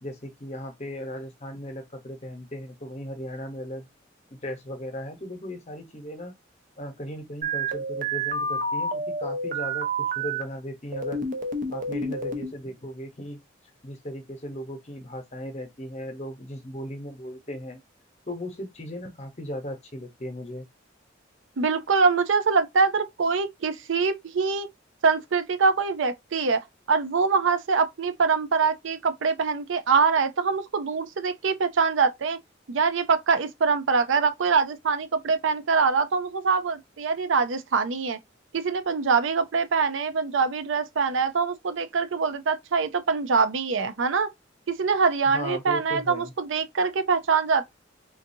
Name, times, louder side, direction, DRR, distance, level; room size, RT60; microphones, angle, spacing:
voice 1, 0.0-3.9 4.3-6.3 6.8-11.3 11.7-13.4 13.8-17.8 18.3-20.7 45.2-46.3, equal, 35° left, 1.0 m, -37 dB
sound 1, 7.4-10.4 10.9-12.5, right 2 dB, 45° right, 0.7 m, -29 dB
voice 2, 21.6-24.7 25.0-32.4 32.7-38.2 38.5-44.3 44.7-47.6, right 5 dB, 80° right, 0.5 m, -24 dB
3.8 x 2.6 x 2.7 m
head